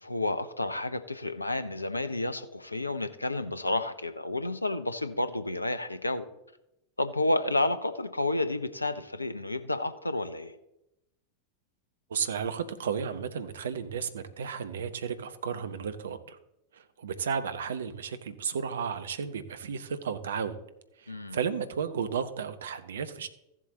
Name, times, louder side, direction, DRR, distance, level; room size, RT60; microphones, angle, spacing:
voice 1, 0.0-6.3 7.0-10.6 21.1-21.4, left 2 dB, 85° left, 12 dB, 0.6 m, -30 dB
voice 2, 12.1-16.4 16.7-20.6 21.0-23.3, right 7 dB, 65° right, 11 dB, 0.8 m, -33 dB
14.5 x 7.4 x 4.0 m, 0.89 s
figure-of-eight pair, 90°, 0 cm